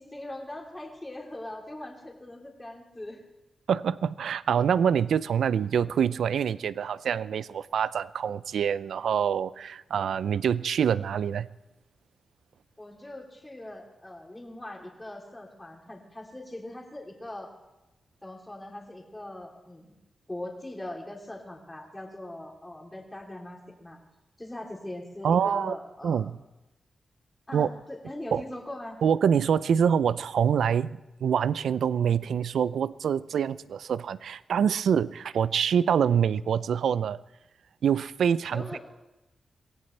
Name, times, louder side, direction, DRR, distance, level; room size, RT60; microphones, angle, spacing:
voice 1, 0.0-3.2 12.8-17.5 18.2-19.9 20.3-24.0 24.4-26.3 27.5-29.0 38.5-38.8, left 1 dB, 15° left, -1 dB, 3.2 m, -41 dB
voice 2, 3.7-11.5 25.2-25.7 26.0-26.4 27.5-27.7 28.3-28.4 29.0-37.2 37.8-38.7, right 8 dB, 85° right, 17 dB, 0.4 m, -25 dB
23.5 x 16.5 x 3.3 m, 0.99 s
cardioid pair, 75°, 0 cm